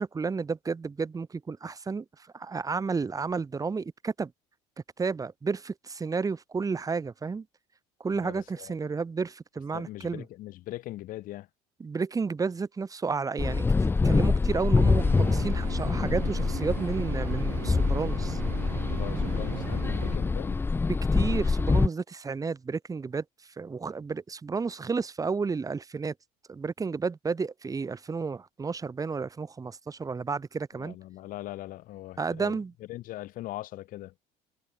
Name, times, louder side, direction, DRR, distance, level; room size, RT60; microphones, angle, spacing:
voice 1, 0.0-2.0 2.3-4.3 5.0-7.4 8.0-10.2 11.8-18.4 21.1-23.2 23.6-26.1 26.5-31.0 32.2-32.7, right 4 dB, 25° right, 2.6 m, -32 dB
voice 2, 8.1-8.7 9.7-11.5 18.9-20.6 30.8-32.6 32.9-34.1, left 16 dB, 65° left, 3.9 m, -40 dB
sound 1, 13.4-21.9, left 4 dB, 15° left, 0.5 m, -25 dB
sound 2, 15.0-20.2, right 40 dB or more, 90° right, 1.5 m, -39 dB
cardioid pair, 110°, 15 cm